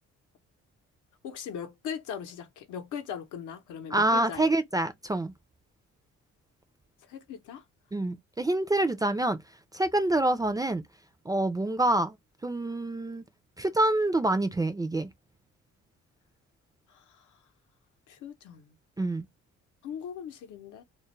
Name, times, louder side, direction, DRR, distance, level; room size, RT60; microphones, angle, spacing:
voice 1, 1.2-4.4 7.1-7.6 16.9-17.0 18.1-18.7 19.8-20.8, left 8 dB, 80° left, 0.7 m, -39 dB
voice 2, 3.9-5.3 7.9-9.4 9.7-10.8 11.3-12.1 12.4-13.2 13.6-15.1 19.0-19.2, right 2 dB, 15° right, 0.3 m, -26 dB
2.3 x 2.0 x 3.0 m
cardioid pair, 90°, 30 cm